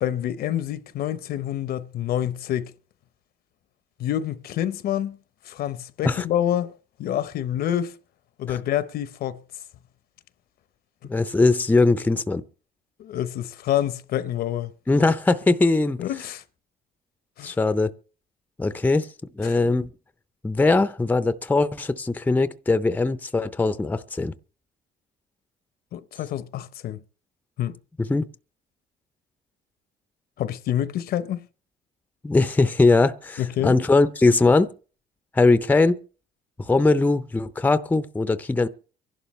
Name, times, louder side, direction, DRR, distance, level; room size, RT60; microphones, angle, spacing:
voice 1, 0.0-2.7 4.0-5.2 5.5-6.7 7.0-8.0 8.4-9.4 13.0-14.7 16.0-16.4 17.4-17.6 19.4-19.5 25.9-27.0 27.6-27.7 30.4-31.4 33.4-33.8, left 11 dB, 65° left, 0.8 m, -27 dB
voice 2, 11.1-12.4 14.9-16.0 17.4-17.9 18.6-19.1 19.4-19.9 20.4-24.3 28.0-28.3 32.2-34.7 35.3-36.0 36.6-38.7, left 3 dB, 10° left, 0.6 m, -20 dB
25.0 x 11.5 x 3.1 m
cardioid pair, 110°, 17 cm